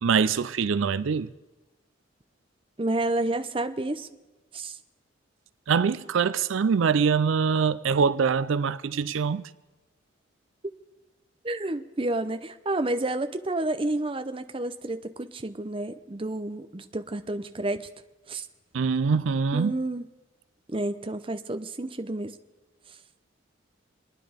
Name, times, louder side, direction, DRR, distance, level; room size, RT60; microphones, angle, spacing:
voice 1, 0.0-1.3 5.7-9.5 18.7-19.7, right 6 dB, 75° right, 0.4 m, -24 dB
voice 2, 2.8-4.1 4.5-4.8 11.4-17.9 18.3-18.5 19.5-20.0 20.7-22.4, right 2 dB, 25° right, 0.6 m, -30 dB
26.0 x 10.0 x 5.1 m
head